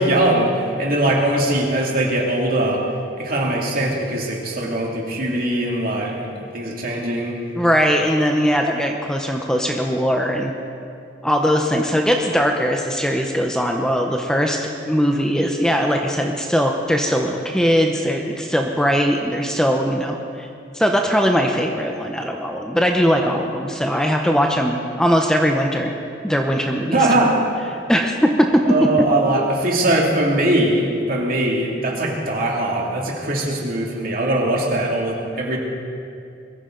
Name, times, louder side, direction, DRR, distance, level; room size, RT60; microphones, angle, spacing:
voice 1, 0.0-2.9 3.2-6.3 6.5-7.4 26.8-27.4 28.6-35.6, right 1 dB, 50° right, -2 dB, 2.6 m, -21 dB
voice 2, 7.6-10.5 11.2-14.6 14.9-20.5 20.7-25.9 26.2-27.0 27.9-28.6, equal, 5° left, 2 dB, 0.8 m, -20 dB
21.5 x 14.0 x 3.9 m, 2.6 s
head